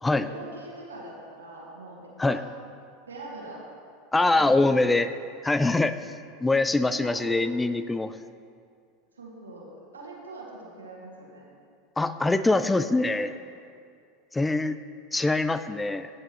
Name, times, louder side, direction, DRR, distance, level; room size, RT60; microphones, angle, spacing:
voice 1, 0.2-2.4 3.1-3.7 4.3-5.3 7.0-7.4 9.1-11.4 12.5-13.3, right 2 dB, 90° right, -3 dB, 1.9 m, -43 dB
voice 2, 4.1-5.1 5.4-6.0 6.4-8.2 12.0-13.3 14.3-14.8 15.1-16.1, left 2 dB, 10° left, 12 dB, 0.4 m, -23 dB
15.0 x 6.7 x 3.1 m, 2.3 s
hypercardioid pair, 85°, 0 cm